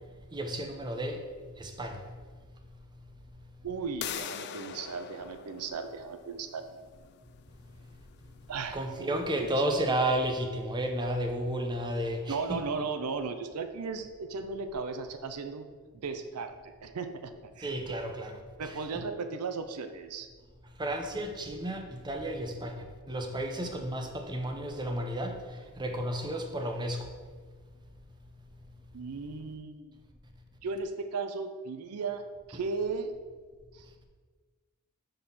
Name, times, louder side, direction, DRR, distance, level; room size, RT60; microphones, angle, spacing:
voice 1, 0.3-1.2 1.6-2.0 8.7-12.6 17.6-18.4 18.6-19.0 20.8-25.4 25.8-27.1, right 1 dB, 20° right, 4 dB, 0.7 m, -32 dB
voice 2, 3.6-6.6 8.5-9.5 12.3-17.7 18.6-20.3 28.9-29.9 30.6-33.1 33.7-33.9, right 4 dB, 90° right, 8 dB, 0.5 m, -36 dB
sound 1, 4.0-9.6, left 9 dB, 50° left, 0.3 m, -44 dB
5.4 x 4.2 x 5.9 m, 1.5 s
head